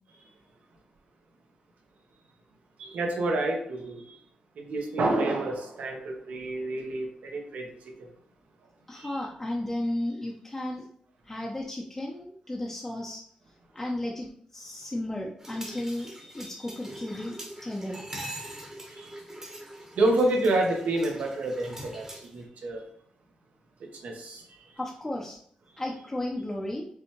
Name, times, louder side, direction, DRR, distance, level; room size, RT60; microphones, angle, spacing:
voice 1, 2.8-4.2 4.6-7.7 8.9-9.1 18.9-19.1 20.0-22.8 24.0-24.6, right 2 dB, 80° right, 1 dB, 1.1 m, -28 dB
voice 2, 8.9-10.9 11.2-13.2 13.7-18.0 24.8-25.4 25.8-26.9, left 1 dB, 15° left, -2 dB, 0.5 m, -34 dB
sound 1, 15.4-22.4, right 1 dB, 20° right, 0.9 m, -43 dB
5.2 x 3.3 x 2.9 m, 0.64 s
wide cardioid pair, 160°, 3 cm